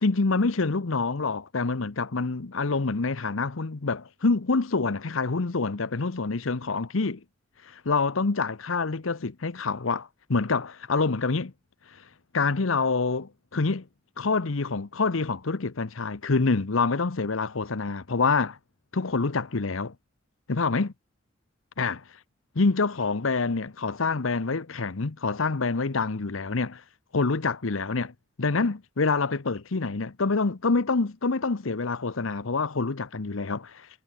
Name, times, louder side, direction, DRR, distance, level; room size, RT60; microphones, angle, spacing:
voice 1, 0.0-7.2 7.6-11.5 11.9-12.0 12.3-13.8 14.2-18.6 18.9-19.9 20.5-20.9 21.8-22.0 22.6-26.8 27.1-33.9, left 4 dB, 75° left, 0.9 m, -26 dB
head